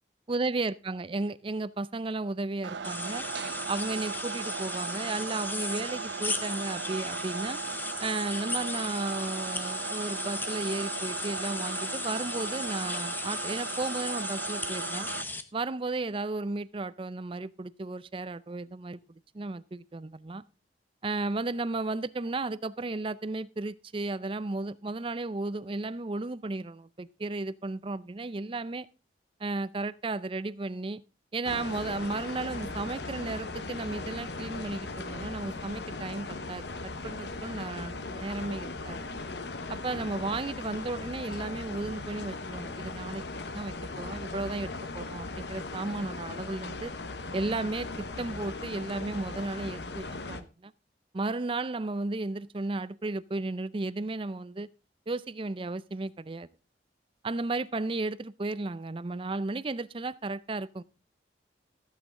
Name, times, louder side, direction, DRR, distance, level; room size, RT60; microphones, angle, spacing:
voice 1, 0.3-3.3 3.7-7.6 8.0-15.1 15.5-19.0 19.3-20.4 21.0-28.9 29.4-31.0 31.3-39.0 39.7-43.2 43.5-44.7 44.9-46.9 47.3-47.9 48.2-50.7 51.1-54.7 55.1-56.5 57.2-60.8, right 3 dB, 30° right, 0.5 m, -34 dB
sound 1, 2.6-15.2, right 6 dB, 80° right, 0.7 m, -37 dB
sound 2, 2.8-15.4, left 3 dB, 10° left, 0.8 m, -36 dB
sound 3, 31.4-50.4, left 3 dB, 70° left, 1.0 m, -38 dB
15.0 x 8.3 x 3.7 m
head